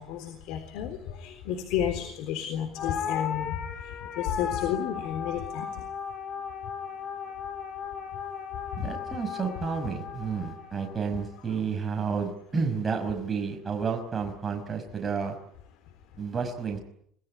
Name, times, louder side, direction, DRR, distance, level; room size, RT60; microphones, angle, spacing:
voice 1, 0.0-3.6 4.2-5.7, left 9 dB, 75° left, 9 dB, 3.8 m, -31 dB
sound 1, 2.8-11.3, left 7 dB, 40° left, 3.2 m, -36 dB
voice 2, 8.8-15.4 16.2-16.8, right 5 dB, 20° right, 3 dB, 5.4 m, -31 dB
26.5 x 19.5 x 10.0 m, 0.69 s
cardioid pair, 160°, 0 cm